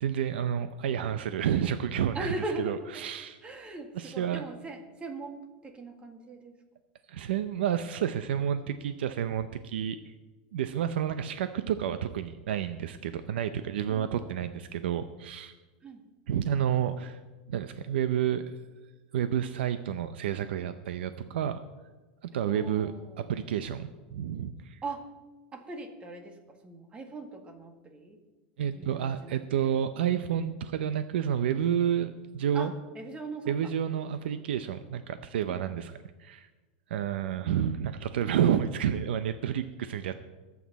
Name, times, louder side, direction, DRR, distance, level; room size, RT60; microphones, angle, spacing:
voice 1, 0.0-2.3 2.6-3.4 4.0-4.4 7.1-10.0 10.5-15.5 16.3-17.2 17.5-18.4 19.1-21.6 22.2-22.9 23.2-24.8 28.6-32.7 33.5-35.9 36.2-36.5 36.9-40.1, right 9 dB, 90° right, 11 dB, 0.7 m, -30 dB
voice 2, 2.1-3.0 3.4-6.6 13.9-14.3 15.8-16.1 22.5-23.2 24.8-25.1 25.5-28.2 28.7-29.7 32.5-33.7 35.5-35.8, right 2 dB, 20° right, 5 dB, 2.0 m, -40 dB
22.0 x 8.4 x 4.2 m, 1.2 s
supercardioid pair, 145°, 6 cm